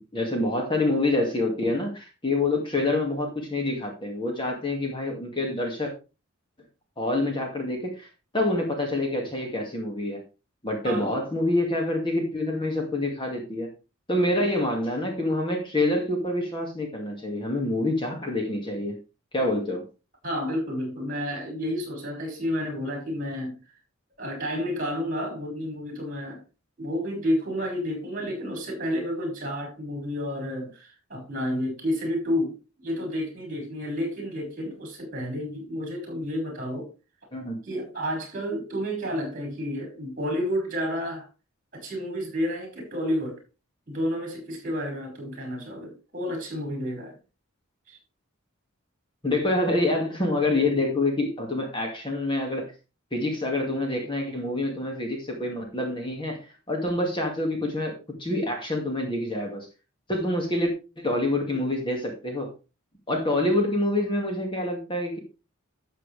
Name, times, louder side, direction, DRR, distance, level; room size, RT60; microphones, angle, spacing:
voice 1, 0.0-5.9 7.0-8.1 8.3-10.2 10.6-13.7 14.1-19.0 19.3-19.8 37.3-37.6 49.2-52.7 53.1-59.7 60.1-62.5 63.1-65.2, left 2 dB, 25° left, 2.3 m, -27 dB
voice 2, 20.2-23.6 24.2-26.4 26.8-36.9 37.6-41.3 41.7-43.4 43.9-47.2 47.9-48.0, equal, 40° right, 5.9 m, -30 dB
12.5 x 7.5 x 3.5 m
head